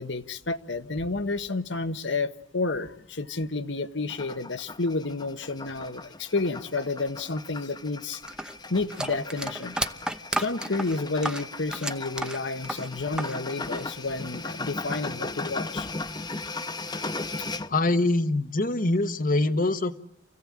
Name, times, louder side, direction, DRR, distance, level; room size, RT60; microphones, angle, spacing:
voice 1, 0.0-8.2 8.7-9.7 10.4-15.9, left 3 dB, 65° left, 10 dB, 1.3 m, -30 dB
sound 1, 4.1-17.7, left 3 dB, 20° left, 1.0 m, -37 dB
sound 2, 8.3-13.4 13.6-14.5, right 1 dB, 5° right, 0.9 m, -32 dB
voice 2, 17.7-20.0, left 2 dB, 45° left, 11 dB, 1.3 m, -24 dB
28.5 x 16.0 x 8.7 m, 0.82 s
head